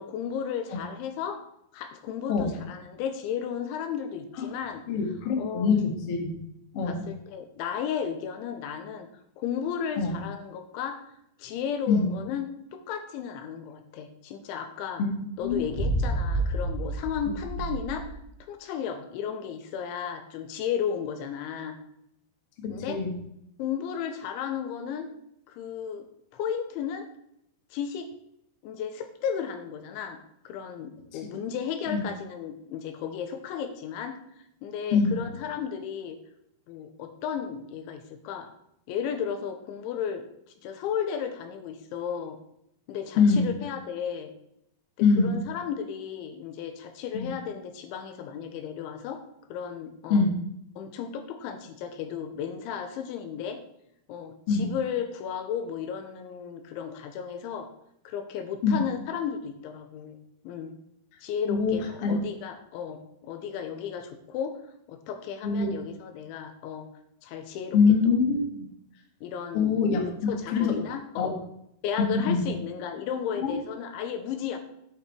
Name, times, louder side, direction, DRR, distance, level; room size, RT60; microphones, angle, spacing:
voice 1, 0.0-1.4 1.7-4.8 5.4-5.7 6.8-9.1 9.4-11.0 11.4-15.0 15.4-18.2 18.5-21.8 22.7-23.0 23.6-25.1 25.5-26.1 26.3-27.1 27.7-28.1 28.6-30.2 30.5-34.2 34.6-36.2 36.7-38.5 38.9-40.3 40.6-42.4 42.9-44.3 45.2-49.2 49.5-50.3 50.8-53.6 54.1-57.7 58.1-60.2 60.5-60.7 61.2-64.6 64.9-66.9 67.2-67.8 68.1-68.2 69.2-69.9 70.3-71.4 71.8-74.6, left 8 dB, 85° left, 7 dB, 3.5 m, -34 dB
voice 2, 4.9-6.3 6.7-7.0 10.0-10.2 11.9-12.1 15.0-15.1 15.4-15.6 22.6-23.1 31.9-32.0 34.9-35.2 43.2-43.5 45.0-45.4 47.1-47.3 50.1-50.3 54.5-54.7 58.6-58.8 61.5-61.8 62.0-62.2 65.4-65.7 67.7-68.4 69.5-70.1 70.5-70.7 71.2-71.3 72.1-72.4 73.4-73.5, left 5 dB, 55° left, 2 dB, 1.6 m, -23 dB
sound 1, 15.4-18.2, right 2 dB, 30° right, 1.4 m, -30 dB
9.0 x 8.5 x 4.5 m, 0.76 s
omnidirectional pair, 5.3 m